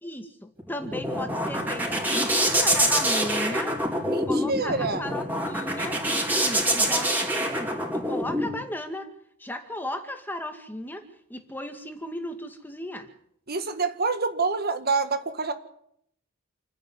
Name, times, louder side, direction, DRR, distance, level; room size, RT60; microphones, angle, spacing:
voice 1, 0.0-3.8 4.2-6.0 6.4-9.1 9.4-11.0 11.3-13.1, left 1 dB, 10° left, 6 dB, 2.0 m, -36 dB
sound 1, 0.6-8.5, right 1 dB, 10° right, 4.7 m, -25 dB
voice 2, 4.1-5.1 13.5-15.5, right 4 dB, 45° right, 8 dB, 1.8 m, -27 dB
28.5 x 10.5 x 9.8 m, 0.70 s
head